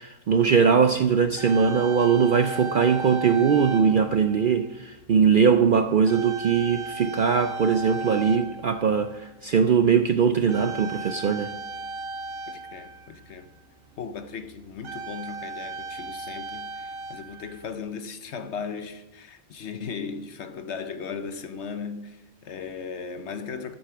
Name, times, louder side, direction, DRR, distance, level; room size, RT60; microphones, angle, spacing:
voice 1, 0.0-11.5, right 6 dB, 60° right, 0.5 m, -21 dB
sound 1, 1.3-4.7 5.4-5.6 6.1-9.4 10.5-13.5 14.3-14.4 14.7-17.8, right 3 dB, 85° right, 1.4 m, -36 dB
voice 2, 12.5-13.5 14.0-23.8, left 5 dB, 60° left, 1.0 m, -37 dB
12.0 x 8.1 x 5.8 m
omnidirectional pair, 1.4 m